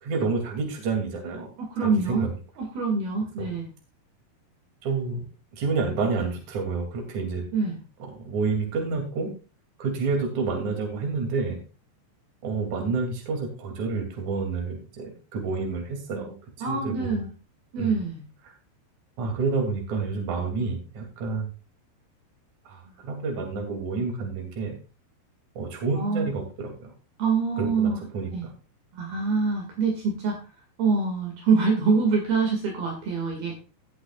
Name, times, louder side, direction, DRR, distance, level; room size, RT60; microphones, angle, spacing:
voice 1, 0.0-1.5 1.8-2.3 3.4-3.5 4.8-5.3 5.5-7.4 8.1-9.3 9.8-11.6 12.4-16.4 16.7-17.1 17.8-18.0 19.2-21.5 22.7-24.8 25.6-26.9 27.6-28.3, right 4 dB, 45° right, 2 dB, 3.6 m, -29 dB
voice 2, 1.6-2.3 2.6-3.7 7.5-7.8 16.6-17.3 17.7-18.2 26.0-26.3 27.2-28.0 28.3-28.5 28.9-30.4 30.8-33.5, right 4 dB, 60° right, 1 dB, 3.8 m, -25 dB
17.5 x 7.9 x 2.4 m, 0.33 s
omnidirectional pair, 5.3 m